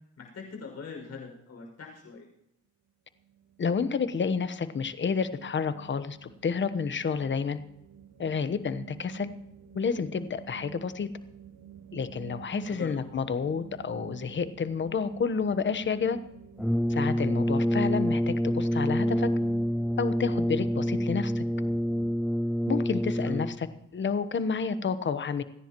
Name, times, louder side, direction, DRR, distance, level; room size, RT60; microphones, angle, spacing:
voice 1, 0.2-2.3 12.7-13.0 23.2-23.4, left 5 dB, 55° left, 1 dB, 6.2 m, -42 dB
sound 1, 3.2-22.2, right 10 dB, 70° right, 1.4 m, -49 dB
voice 2, 3.6-7.6 8.2-9.3 9.7-11.1 11.9-16.2 16.9-19.3 20.0-21.4 22.7-23.7 23.9-25.4, left 5 dB, 40° left, 12 dB, 1.1 m, -30 dB
Brass instrument, 16.6-23.7, equal, ahead, 0.4 m, -27 dB
28.0 x 10.5 x 3.1 m, 0.83 s
cardioid pair, 90°, 30 cm